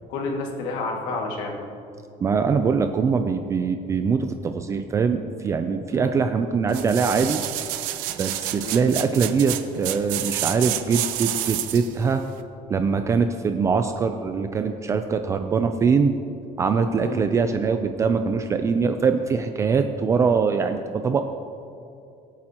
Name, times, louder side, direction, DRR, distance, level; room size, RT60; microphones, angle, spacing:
voice 1, 0.1-1.6 5.9-6.1 8.6-8.8 17.0-17.3, left 3 dB, 75° left, 1 dB, 2.0 m, -30 dB
voice 2, 2.2-7.4 8.2-12.2 12.7-16.1 16.6-21.2, right 5 dB, 20° right, 7 dB, 0.4 m, -22 dB
sound 1, 6.7-11.9 12.4-12.5, right 13 dB, 85° right, 0.7 m, -29 dB
24.0 x 8.7 x 2.9 m, 2.6 s
cardioid pair, 175°, 14 cm